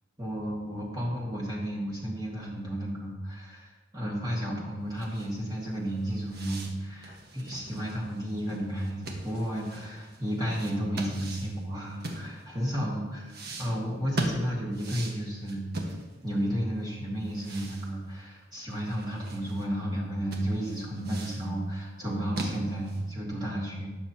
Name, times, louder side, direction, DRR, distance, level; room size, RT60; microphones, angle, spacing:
voice 1, 0.2-13.2 13.6-15.7 16.2-24.0, equal, 20° right, -5 dB, 2.1 m, -32 dB
sound 1, 4.9-12.7 13.3-16.4 16.7-16.8 17.2-19.7 20.0-20.1 20.3-21.5 22.0-23.1, right 1 dB, 55° right, 1.5 m, -40 dB
20.0 x 7.1 x 2.9 m, 1.2 s
head